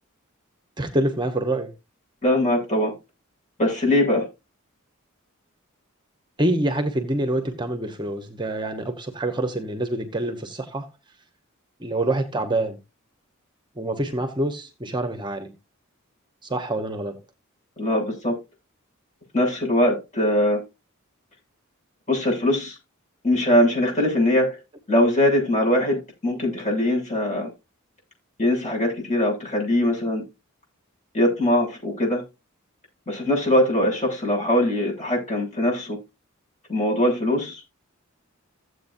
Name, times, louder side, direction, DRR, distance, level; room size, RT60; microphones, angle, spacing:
voice 1, 0.8-1.7 6.4-10.9 11.8-12.8 13.8-15.5 16.5-17.2, right 1 dB, 20° right, 1.1 m, -26 dB
voice 2, 2.2-2.9 3.6-4.3 17.8-18.3 19.3-20.6 22.1-22.8 23.2-24.6 24.9-27.5 28.4-30.2 31.1-32.2 33.1-36.0 36.7-37.6, left 1 dB, 35° left, 7.4 m, -21 dB
15.0 x 8.1 x 2.7 m
head